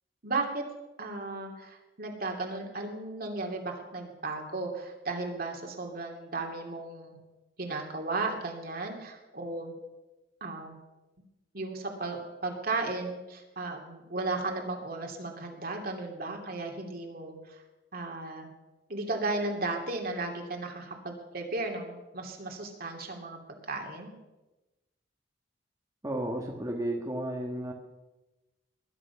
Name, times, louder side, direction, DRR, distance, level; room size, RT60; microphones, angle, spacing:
voice 1, 0.2-0.7 1.0-7.2 7.6-9.7 10.4-10.8 11.5-17.6 17.9-18.5 18.9-23.4 23.7-24.1, right 3 dB, 55° right, 2 dB, 2.9 m, -35 dB
voice 2, 26.0-27.7, right 1 dB, 20° right, 0 dB, 1.5 m, -33 dB
20.5 x 11.0 x 5.9 m, 1.1 s
head